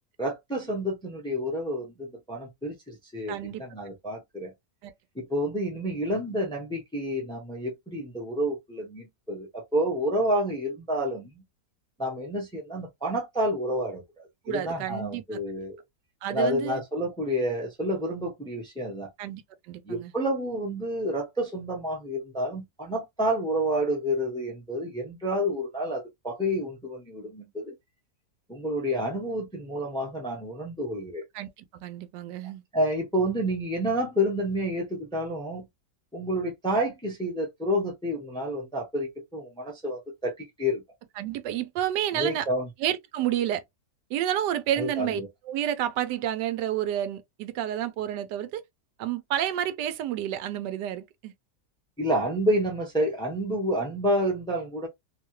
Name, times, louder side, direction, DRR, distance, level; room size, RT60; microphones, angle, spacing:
voice 1, 0.2-4.5 5.1-11.4 12.0-15.8 16.3-19.1 19.8-27.7 28.5-31.2 32.7-35.7 36.1-40.8 42.1-42.7 44.8-45.3 52.0-54.9, equal, 5° left, 0.6 m, -29 dB
voice 2, 3.3-3.6 4.8-4.9 14.5-15.4 16.2-16.8 19.2-19.4 19.7-20.1 31.3-32.6 41.2-42.5 42.8-43.6 44.1-48.6 49.0-51.3, right 11 dB, 90° right, 1.2 m, -30 dB
3.0 x 2.2 x 3.0 m
omnidirectional pair, 1.8 m